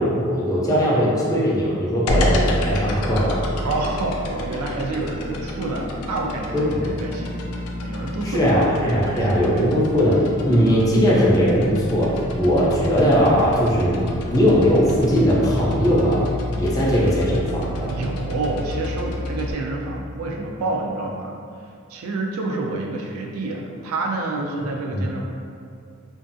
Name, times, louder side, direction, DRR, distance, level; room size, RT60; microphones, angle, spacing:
voice 1, 0.0-3.4 6.5-6.9 8.2-10.2 10.5-14.0 14.3-16.3 16.6-17.9 24.4-24.5 24.9-25.0, equal, 15° left, -6 dB, 0.4 m, -19 dB
sound 1, 2.1-19.5, left 1 dB, 85° left, 0.3 m, -29 dB
voice 2, 3.6-7.4 7.8-9.2 17.9-21.4 21.9-25.2, right 2 dB, 80° right, 0 dB, 0.4 m, -28 dB
2.6 x 2.3 x 2.5 m, 2.3 s
head